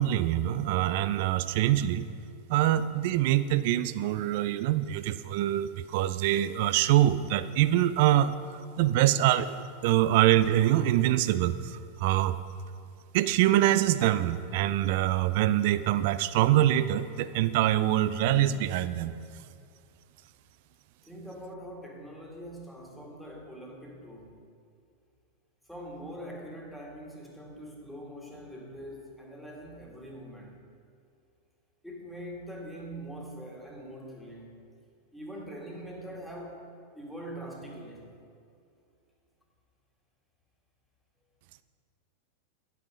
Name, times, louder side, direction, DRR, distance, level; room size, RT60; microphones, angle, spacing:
voice 1, 0.0-2.1 2.5-8.3 8.8-9.6 9.8-12.4 13.1-19.1, right 13 dB, 50° right, 14 dB, 0.4 m, -24 dB
voice 2, 21.0-24.4 25.7-30.6 31.8-34.6 35.1-36.7 37.0-38.1, equal, ahead, -2 dB, 1.8 m, -43 dB
10.0 x 8.2 x 5.1 m, 2.5 s
figure-of-eight pair, 90°, 0 cm